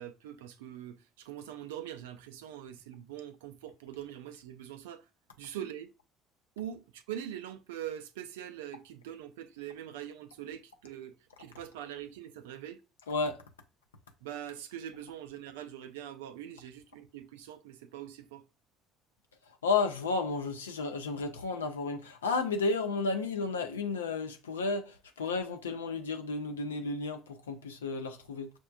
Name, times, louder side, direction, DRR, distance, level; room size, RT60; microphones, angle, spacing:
voice 1, 0.0-5.0 5.4-5.9 6.6-12.8 14.2-18.4, right 10 dB, 75° right, 0.4 m, -43 dB
voice 2, 13.1-13.4 19.6-28.5, left 4 dB, 85° left, 0.5 m, -32 dB
6.0 x 2.2 x 2.3 m
hypercardioid pair, 60°, 0 cm